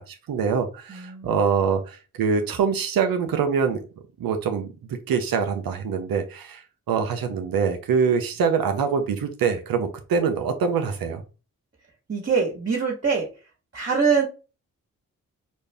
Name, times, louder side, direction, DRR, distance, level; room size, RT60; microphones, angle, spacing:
voice 1, 0.0-3.8 4.2-11.2, right 6 dB, 80° right, 6 dB, 0.9 m, -24 dB
voice 2, 0.9-1.3 12.1-13.3 13.7-14.3, right 5 dB, 35° right, 0 dB, 1.6 m, -23 dB
5.2 x 2.5 x 3.4 m, 0.33 s
supercardioid pair, 40°, 35 cm